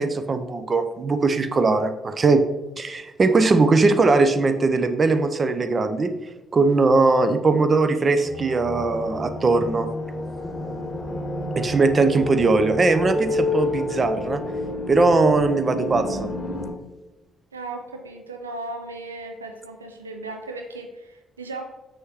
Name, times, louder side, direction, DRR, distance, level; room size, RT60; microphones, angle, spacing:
voice 1, 0.0-2.4 2.8-6.1 6.5-9.9 11.6-14.4 14.9-16.3, right 3 dB, 35° right, 9 dB, 0.6 m, -20 dB
sound 1, 8.2-16.7, left 2 dB, 15° left, 1.7 m, -29 dB
voice 2, 17.5-21.6, right 2 dB, 85° right, 4 dB, 0.3 m, -36 dB
6.5 x 6.4 x 3.0 m, 1.1 s
figure-of-eight pair, 45°, 0 cm